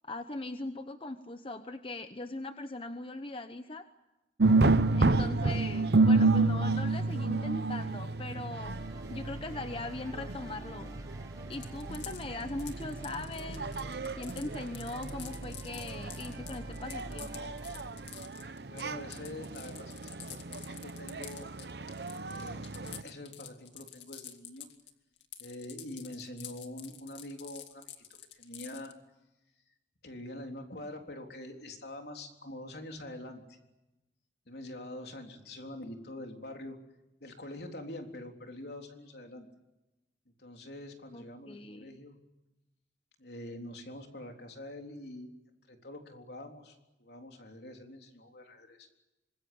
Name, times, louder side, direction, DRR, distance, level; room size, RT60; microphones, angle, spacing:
voice 1, 0.0-3.9 4.9-11.0 11.5-13.6 14.1-17.5 41.1-41.9, left 2 dB, 30° left, 8 dB, 0.9 m, -40 dB
Drums and gon in a buddhist monastery, 4.4-23.0, right 3 dB, 65° right, 0.8 m, -30 dB
sound 1, 8.6-17.9, right 1 dB, 20° right, 1.5 m, -47 dB
sound 2, 11.5-24.9 25.2-28.9, left 11 dB, 85° left, 2.2 m, -48 dB
voice 2, 18.4-21.5 22.3-24.7 25.4-27.9 28.3-29.0 30.0-33.6 34.5-36.8 37.2-39.5 40.4-42.2 43.2-45.3 45.7-48.9, left 1 dB, 65° left, 3 dB, 3.7 m, -45 dB
25.5 x 21.0 x 8.7 m, 0.97 s
head